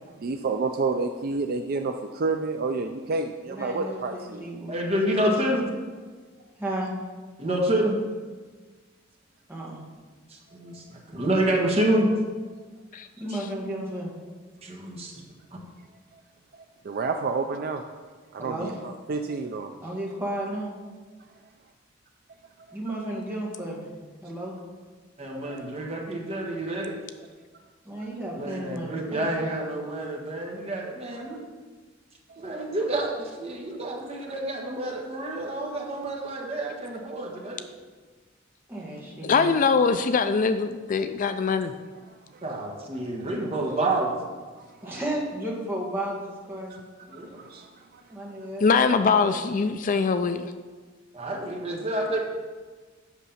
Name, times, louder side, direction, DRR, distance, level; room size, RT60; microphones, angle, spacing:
voice 1, 0.2-4.4 16.5-17.8 18.3-19.7 22.7-22.8 25.4-25.7 32.3-32.5 42.1-42.4 44.6-45.0 46.7-46.8 47.1-48.2, right 4 dB, 50° right, 6 dB, 0.4 m, -30 dB
voice 2, 3.5-4.9 6.6-6.9 9.5-9.8 13.2-14.1 18.4-18.7 19.8-20.7 22.7-23.9 24.2-24.6 27.8-29.6 38.7-39.5 44.8-46.8 48.1-49.4, right 1 dB, 10° right, -3 dB, 1.9 m, -33 dB
voice 3, 4.7-5.7 7.4-8.0 10.3-12.1 14.6-15.1 25.2-27.0 28.3-31.4 32.4-37.4 42.4-44.1 47.1-47.4 51.1-52.2, right 1 dB, 30° right, -1 dB, 1.6 m, -28 dB
voice 4, 39.2-41.7 48.6-50.5, left 5 dB, 40° left, 10 dB, 0.4 m, -22 dB
8.2 x 6.2 x 5.7 m, 1.4 s
head